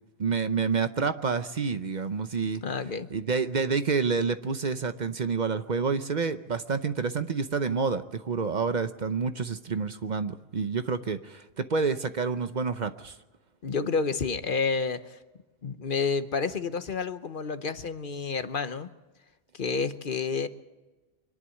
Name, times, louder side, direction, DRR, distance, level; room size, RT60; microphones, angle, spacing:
voice 1, 0.2-2.6 3.1-13.1, right 5 dB, 50° right, 10 dB, 0.8 m, -28 dB
voice 2, 2.6-3.1 13.6-15.2 15.6-18.9 19.5-20.5, left 5 dB, 55° left, 10 dB, 1.1 m, -29 dB
24.5 x 11.0 x 9.8 m, 1.2 s
omnidirectional pair, 1.0 m